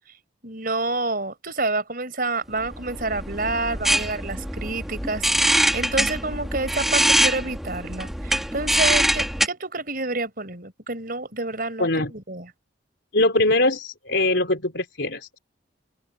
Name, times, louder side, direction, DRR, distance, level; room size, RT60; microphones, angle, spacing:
voice 1, 0.4-12.5, right 3 dB, 50° right, 5.2 m, -28 dB
sound 1, 2.6-9.5, equal, ahead, 2.0 m, -23 dB
voice 2, 11.8-12.1 13.1-15.4, left 2 dB, 65° left, 3.7 m, -22 dB
open air
head